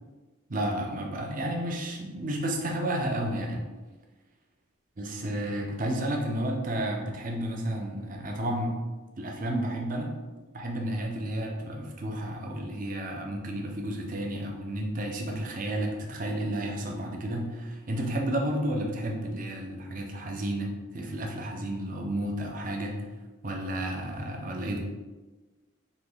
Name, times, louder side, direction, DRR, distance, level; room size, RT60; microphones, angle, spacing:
voice 1, 0.5-3.7 5.0-8.8 9.2-10.2 10.5-23.0 23.4-24.8, right 1 dB, 40° right, 1 dB, 0.6 m, -31 dB
4.2 x 2.9 x 3.9 m, 1.2 s
head